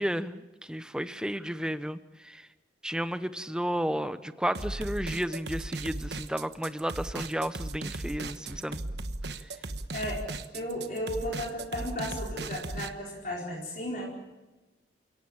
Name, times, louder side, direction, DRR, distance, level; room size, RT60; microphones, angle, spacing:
voice 1, 0.0-2.5 2.8-8.8, equal, 5° right, 11 dB, 0.9 m, -32 dB
sound 1, 4.5-12.9, right 2 dB, 65° right, 1.3 m, -37 dB
voice 2, 9.9-10.2 10.5-14.1, left 1 dB, 50° left, -3 dB, 4.6 m, -34 dB
29.0 x 17.5 x 8.7 m, 1.1 s
head